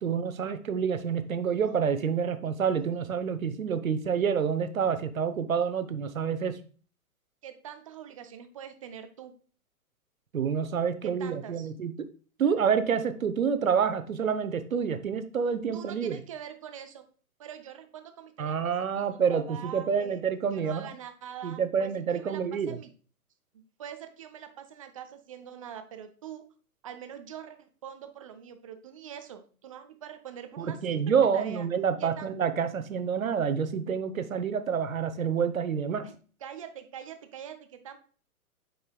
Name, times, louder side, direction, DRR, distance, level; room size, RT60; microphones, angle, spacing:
voice 1, 0.0-6.6 10.3-12.1 12.4-16.2 18.4-20.9 21.4-22.8 30.6-36.1, right 7 dB, 65° right, 10 dB, 0.9 m, -28 dB
voice 2, 7.4-9.3 11.0-11.7 15.7-17.1 17.4-20.2 20.5-22.9 23.5-26.5 26.8-31.0 31.3-31.7 32.0-32.3 36.0-36.1 36.4-38.0, right 9 dB, 25° right, 8 dB, 0.5 m, -44 dB
7.8 x 5.5 x 2.3 m, 0.40 s
figure-of-eight pair, 120°, 45 cm